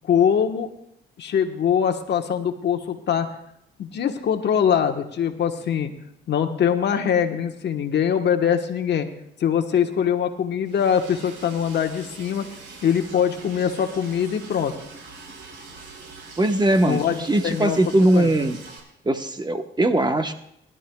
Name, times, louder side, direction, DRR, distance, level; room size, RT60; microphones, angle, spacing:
voice 1, 0.0-0.7 1.2-3.3 3.8-5.9 6.3-9.1 9.4-12.5 12.8-14.7 16.8-17.8 18.1-18.3, left 8 dB, 60° left, 6 dB, 1.2 m, -22 dB
Liquid, 10.7-18.8, right 4 dB, 80° right, 4.2 m, -43 dB
voice 2, 16.4-18.6 19.0-20.3, right 1 dB, 20° right, 7 dB, 1.0 m, -20 dB
21.0 x 12.0 x 2.3 m, 0.74 s
cardioid pair, 90°, 20 cm